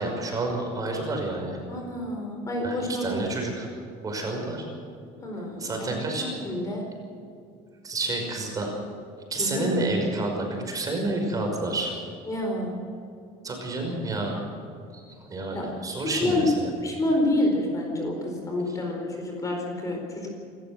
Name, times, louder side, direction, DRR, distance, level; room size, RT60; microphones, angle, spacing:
voice 1, 0.0-1.6 2.6-2.8 3.0-3.7 4.0-4.6 5.6-6.3 7.8-8.7 9.3-11.9 13.4-14.3 15.3-16.4, right 2 dB, 25° right, 1 dB, 5.6 m, -29 dB
voice 2, 1.7-3.3 5.2-6.8 9.4-9.7 12.2-12.8 15.5-15.7 16.0-16.6 16.8-20.3, left 1 dB, 20° left, 1 dB, 4.5 m, -28 dB
27.5 x 14.0 x 7.9 m, 2.5 s
cardioid pair, 150°, 15 cm